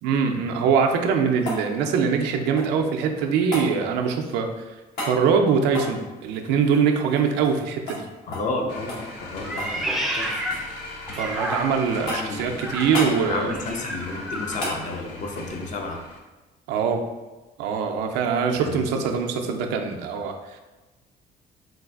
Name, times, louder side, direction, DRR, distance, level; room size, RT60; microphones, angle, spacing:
voice 1, 0.0-4.7 5.1-8.1 11.2-13.5 16.7-17.0 17.6-20.6, right 6 dB, 90° right, 4 dB, 0.4 m, -23 dB
sound 1, 1.1-2.9 3.5-3.7 4.9-5.2 5.7-7.6 7.9-8.0 8.3-8.5 8.9-9.8 10.1-10.7 11.1-11.6 12.1-12.4 12.9-13.2 14.6-14.8 17.2-17.3, left 1 dB, 70° left, 1.1 m, -33 dB
voice 2, 8.3-10.4 12.1-16.0 18.5-19.0, left 3 dB, 45° left, 2 dB, 0.5 m, -32 dB
sound 2, 8.7-16.2, left 2 dB, 90° left, 0.5 m, -40 dB
Meow, 9.4-12.0 12.6-14.6, right 1 dB, ahead, 0.3 m, -31 dB
3.9 x 2.4 x 2.3 m, 1.1 s
cardioid pair, 110°, 17 cm